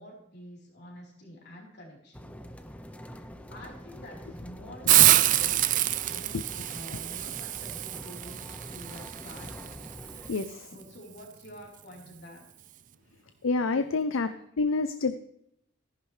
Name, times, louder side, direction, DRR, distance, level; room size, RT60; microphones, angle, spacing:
voice 1, 0.0-2.3 3.0-9.7 10.0-10.4 10.7-12.4 14.3-14.4, equal, 55° left, -2 dB, 3.9 m, -48 dB
sound 1, 2.1-10.3, equal, 5° left, 0.6 m, -45 dB
Hiss, 4.9-10.5, right 14 dB, 40° right, 0.4 m, -26 dB
voice 2, 10.3-10.7 13.4-14.3 14.6-15.2, left 3 dB, 70° left, 10 dB, 0.5 m, -27 dB
14.0 x 11.0 x 3.3 m, 0.76 s
head